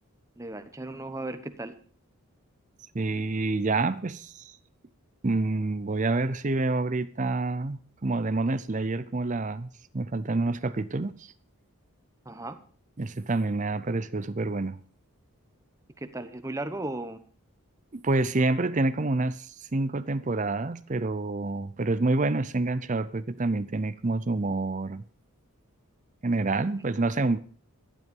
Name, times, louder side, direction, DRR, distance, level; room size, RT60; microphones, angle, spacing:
voice 1, 0.4-1.7 12.2-12.6 16.0-17.2, right 2 dB, 15° right, 1.0 m, -36 dB
voice 2, 2.9-4.6 5.2-9.7 9.9-11.3 13.0-14.8 17.9-25.0 26.2-27.4, right 2 dB, 35° right, 0.6 m, -27 dB
12.5 x 11.0 x 5.3 m
head